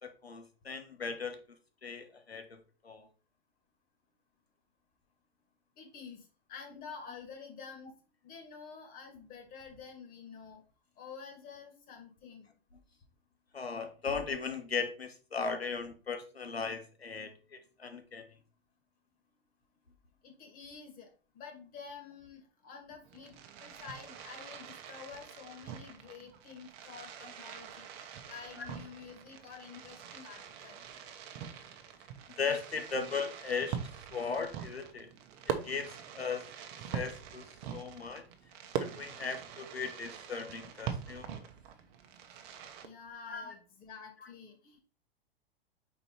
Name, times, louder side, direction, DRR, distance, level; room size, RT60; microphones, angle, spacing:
voice 1, 0.0-1.4 1.8-3.1 13.5-18.3 27.2-27.3 28.6-28.7 32.4-33.8 34.1-35.1 35.5-36.5 36.9-38.2 38.8-41.4 43.3-43.5, left 5 dB, 80° left, 7 dB, 1.1 m, -37 dB
voice 2, 5.8-6.2 6.5-7.9 8.2-10.6 11.0-12.5 20.2-21.1 21.3-23.4 23.6-27.9 28.3-30.8 42.8-44.8, left 6 dB, 30° left, 3 dB, 2.0 m, -49 dB
Fireworks, 23.0-42.8, right 8 dB, 35° right, 0.9 m, -43 dB
5.1 x 4.6 x 4.4 m, 0.37 s
figure-of-eight pair, 100°, 30 cm